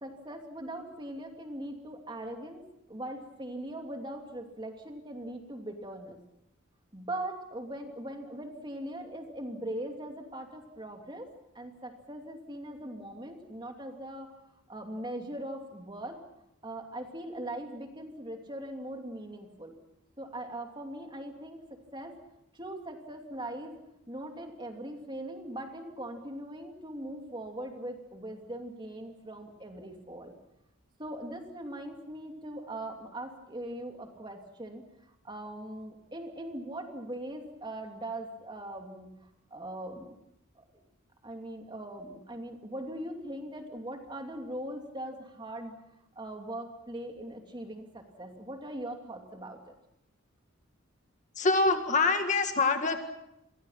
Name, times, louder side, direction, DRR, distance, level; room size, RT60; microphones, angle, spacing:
voice 1, 0.0-6.2 6.9-11.3 11.5-14.3 14.7-16.2 16.6-19.8 20.2-22.2 22.5-23.8 24.1-30.3 31.0-34.8 35.2-40.2 40.5-40.6 41.2-45.7 46.2-49.7, right 1 dB, 20° right, 3 dB, 2.9 m, -40 dB
voice 2, 51.4-53.0, left 3 dB, 35° left, 6 dB, 1.9 m, -25 dB
29.5 x 23.5 x 5.9 m, 0.84 s
head